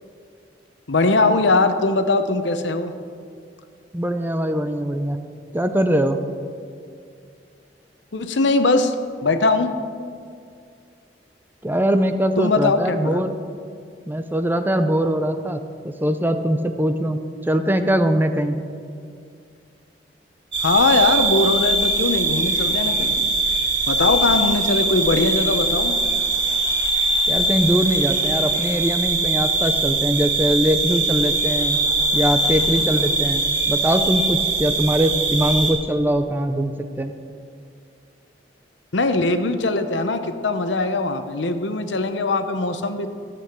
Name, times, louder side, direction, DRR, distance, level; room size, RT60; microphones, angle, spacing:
voice 1, 0.9-2.9 8.1-8.9 9.2-9.8 12.4-13.2 20.6-23.2 23.9-25.9 38.9-43.1, left 3 dB, 85° left, 9 dB, 0.9 m, -20 dB
voice 2, 3.9-5.2 5.5-6.2 11.6-13.3 14.1-15.6 16.0-18.6 27.3-31.8 32.1-36.7 37.0-37.1, right 1 dB, 10° right, 8 dB, 0.6 m, -21 dB
sound 1, 20.5-35.7, right 2 dB, 75° right, 2.8 m, -21 dB
13.5 x 7.7 x 6.9 m, 2.3 s
head